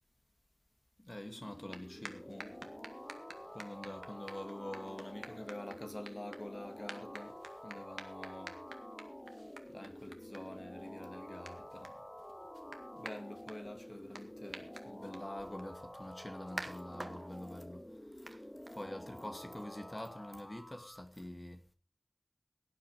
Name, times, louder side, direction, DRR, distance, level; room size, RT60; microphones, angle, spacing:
voice 1, 1.0-2.7 3.5-7.4 7.6-8.6 9.7-12.0 13.0-17.9 18.2-18.4 18.7-21.6, left 1 dB, 30° left, 2.4 m, -46 dB
sound 1, 1.1-21.0, left 1 dB, 15° left, 0.9 m, -50 dB
sound 2, 1.5-19.2, right 2 dB, 55° right, 2.0 m, -52 dB
17.5 x 9.2 x 5.1 m
wide cardioid pair, 50°, 0 cm